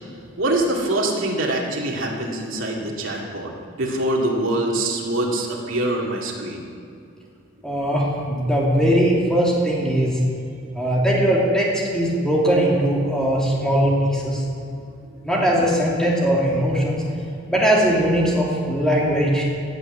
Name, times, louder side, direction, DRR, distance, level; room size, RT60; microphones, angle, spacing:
voice 1, 0.4-3.5 3.8-6.6, right 1 dB, 75° right, -1 dB, 2.4 m, -24 dB
voice 2, 7.6-10.2 10.7-14.4 15.2-17.0 17.5-19.5, equal, 5° left, -4 dB, 2.7 m, -20 dB
14.5 x 7.7 x 8.1 m, 2.5 s
head